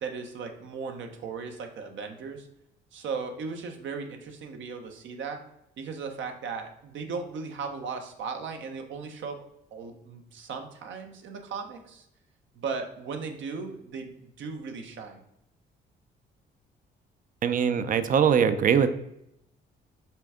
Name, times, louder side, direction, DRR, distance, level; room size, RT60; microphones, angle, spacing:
voice 1, 0.0-2.5 2.9-5.4 5.8-9.4 9.7-12.1 12.5-15.2, right 5 dB, 75° right, 5 dB, 1.0 m, -37 dB
voice 2, 17.4-18.9, right 7 dB, 45° right, 11 dB, 0.5 m, -22 dB
6.0 x 3.4 x 4.9 m, 0.77 s
cardioid pair, 90°, 20 cm